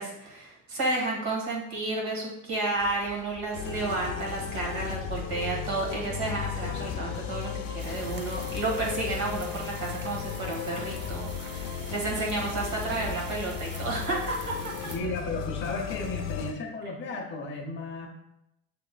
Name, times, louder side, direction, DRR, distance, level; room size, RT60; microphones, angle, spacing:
voice 1, 0.0-14.7, right 2 dB, 60° right, -2 dB, 1.6 m, -31 dB
sound 1, 2.7-13.9, equal, 10° right, 1.4 m, -49 dB
sound 2, 3.5-16.5, left 9 dB, 75° left, 0.6 m, -35 dB
sound 3, 7.8-15.0, right 5 dB, 35° right, 0.5 m, -46 dB
voice 2, 14.8-18.1, left 2 dB, 35° left, 1 dB, 0.7 m, -34 dB
7.2 x 3.3 x 2.2 m, 0.83 s
cardioid pair, 160°, 33 cm